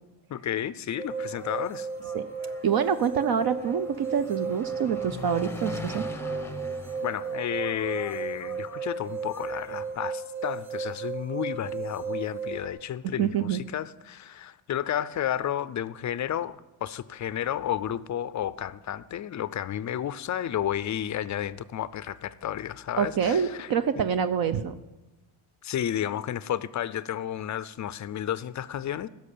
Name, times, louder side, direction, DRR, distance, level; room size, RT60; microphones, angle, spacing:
voice 1, 0.3-1.9 7.0-24.0 25.6-29.1, left 10 dB, 40° left, 0.5 m, -32 dB
sound 1, 1.0-12.7, right 5 dB, 65° right, 2.2 m, -34 dB
Engine, 1.1-10.0, left 3 dB, 5° left, 0.7 m, -43 dB
voice 2, 2.6-6.1 13.2-13.6 23.0-24.7, right 7 dB, 50° right, 0.7 m, -26 dB
16.5 x 6.5 x 8.4 m
cardioid pair, 125°, 49 cm